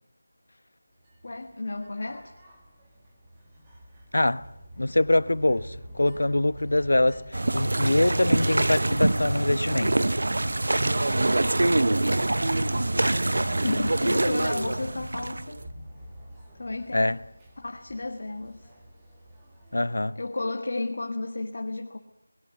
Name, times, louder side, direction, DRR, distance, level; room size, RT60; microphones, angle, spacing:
sound 1, 1.0-20.2, equal, 5° right, 2.1 m, -45 dB
voice 1, 1.2-2.3 13.6-15.6 16.6-17.2 17.6-18.7 20.1-22.0, left 2 dB, 35° left, 1.5 m, -32 dB
voice 2, 4.1-4.4 4.8-10.1 16.9-17.2 19.7-20.2, left 1 dB, 70° left, 1.1 m, -24 dB
sound 2, 7.3-15.6, right 2 dB, 45° right, 0.9 m, -25 dB
21.0 x 20.5 x 9.2 m
figure-of-eight pair, 180°, 0 cm